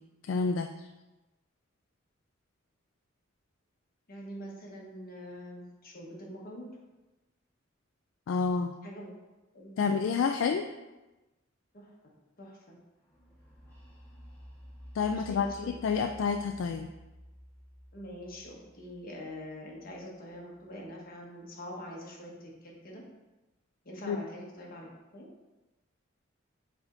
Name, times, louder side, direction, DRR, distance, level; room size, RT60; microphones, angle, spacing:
voice 1, 0.2-0.9 8.3-8.7 9.8-10.7 14.9-16.9 24.1-24.2, left 5 dB, 70° left, 5 dB, 0.3 m, -29 dB
voice 2, 4.1-6.7 8.8-9.1 9.5-10.2 11.7-11.9 12.4-12.6 15.1-15.7 17.9-23.0 23.8-25.3, equal, 50° left, -2 dB, 1.3 m, -44 dB
sound 1, 13.1-20.8, equal, 10° left, 1.5 m, -52 dB
7.1 x 3.5 x 3.8 m, 1.1 s
head